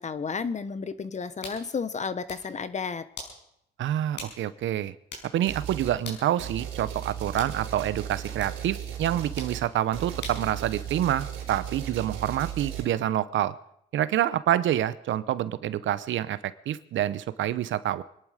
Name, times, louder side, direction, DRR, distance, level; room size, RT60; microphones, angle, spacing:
voice 1, 0.0-3.1, left 5 dB, 35° left, 14 dB, 1.1 m, -32 dB
sound 1, 1.4-1.6 2.1-2.5 3.2-3.4 4.2-4.4 4.7-4.8 5.1-5.3 6.0-6.3 7.4-7.6 8.4-8.6 9.4-9.6 10.2-10.5, left 3 dB, 60° left, 5.5 m, -40 dB
voice 2, 3.8-4.9 5.3-13.5 13.9-18.0, right 12 dB, 75° right, 15 dB, 0.8 m, -27 dB
sound 2, 5.5-6.0 6.4-12.9, right 9 dB, 90° right, 4.1 m, -36 dB
25.5 x 10.5 x 5.0 m, 0.75 s
cardioid pair, 90°, 20 cm